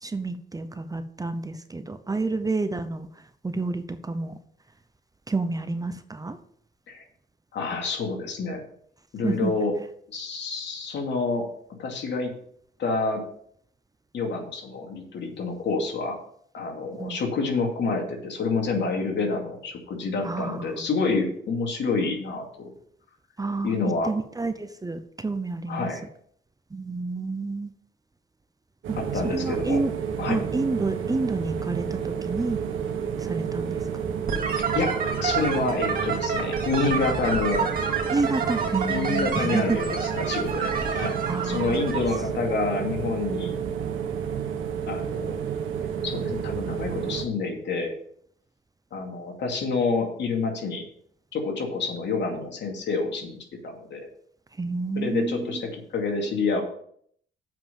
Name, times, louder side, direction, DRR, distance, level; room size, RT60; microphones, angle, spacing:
voice 1, 0.0-4.4 5.3-6.4 9.2-9.5 17.0-17.2 20.2-20.9 23.4-23.8 24.0-25.9 26.7-27.7 28.9-29.0 29.2-29.9 30.3-32.6 33.2-34.0 38.1-39.8 41.2-41.8 54.6-55.6, right 3 dB, 20° right, 10 dB, 0.8 m, -29 dB
voice 2, 7.5-8.6 9.1-9.7 10.1-11.5 11.8-12.3 12.8-13.2 14.1-16.2 16.5-22.7 23.6-24.1 25.7-26.0 28.9-29.8 30.2-30.4 34.7-34.9 35.2-37.7 38.9-43.5 44.9-45.4 46.0-47.9 48.9-50.9 51.3-53.4 53.6-54.1 54.9-56.6, left 4 dB, 65° left, 2 dB, 2.6 m, -28 dB
sound 1, 28.8-47.2, right 7 dB, 80° right, 1.4 m, -30 dB
sound 2, 34.3-42.2, right 5 dB, 45° right, 2.4 m, -29 dB
7.5 x 5.7 x 7.0 m, 0.65 s
cardioid pair, 90°, 20 cm